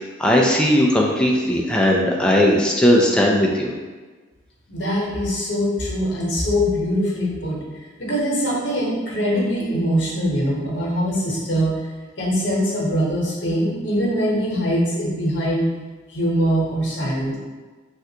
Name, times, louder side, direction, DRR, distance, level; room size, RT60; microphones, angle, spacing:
voice 1, 0.2-3.7, equal, 5° left, -2 dB, 0.3 m, -17 dB
voice 2, 4.7-7.6 8.0-11.9 12.2-15.7 16.1-17.4, equal, 65° left, -5 dB, 1.0 m, -22 dB
3.2 x 2.4 x 2.8 m, 1.3 s
head